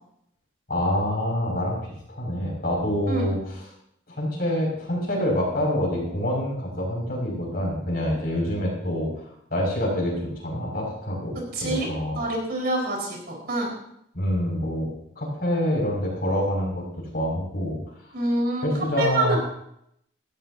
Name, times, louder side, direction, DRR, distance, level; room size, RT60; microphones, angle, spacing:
voice 1, 0.7-1.8 2.1-3.4 4.1-9.1 9.5-10.1 10.4-11.3 11.6-12.2 14.1-14.9 15.2-17.8 18.6-19.4, equal, 50° left, -2 dB, 6.3 m, -26 dB
voice 2, 11.5-11.9 12.2-13.7 18.1-18.7 19.0-19.4, right 2 dB, 50° right, -1 dB, 4.9 m, -26 dB
18.0 x 15.0 x 2.8 m, 0.74 s
head